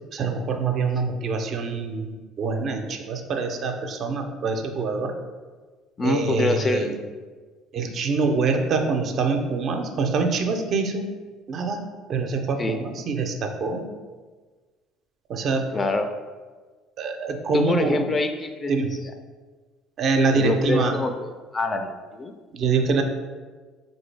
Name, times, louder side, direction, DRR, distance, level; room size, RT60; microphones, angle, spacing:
voice 1, 0.1-5.1 6.0-6.9 7.7-11.1 11.5-13.8 15.3-15.7 17.0-18.0 18.7-18.9 20.0-21.0 22.5-23.0, right 4 dB, 50° right, 5 dB, 0.4 m, -25 dB
voice 2, 6.0-6.9 12.6-12.8 15.7-16.1 17.5-18.7 20.3-22.3, left 2 dB, 30° left, 7 dB, 0.3 m, -25 dB
3.8 x 2.7 x 3.2 m, 1.4 s
hypercardioid pair, 60°, 0 cm